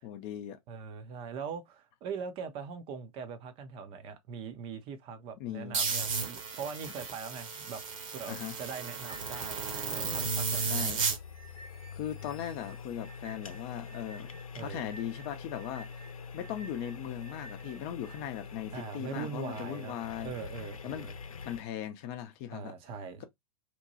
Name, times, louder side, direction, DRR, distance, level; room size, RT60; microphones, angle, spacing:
voice 1, 0.0-0.6 5.4-5.8 8.3-8.5 10.6-11.1 12.0-14.3 14.6-15.9 16.3-20.3 20.8-21.1 21.5-22.7 23.2-23.3, left 10 dB, 35° left, 0.6 m, -38 dB
voice 2, 0.7-7.8 8.1-10.9 14.6-14.9 18.7-21.1 22.5-23.2, right 6 dB, 30° right, 0.6 m, -41 dB
sound 1, 5.7-11.2, right 5 dB, 65° right, 1.1 m, -33 dB
sound 2, 9.1-21.6, left 5 dB, 75° left, 0.7 m, -45 dB
sound 3, 9.1-18.2, right 2 dB, 15° left, 0.9 m, -53 dB
2.9 x 2.2 x 2.7 m
figure-of-eight pair, 100°, 18 cm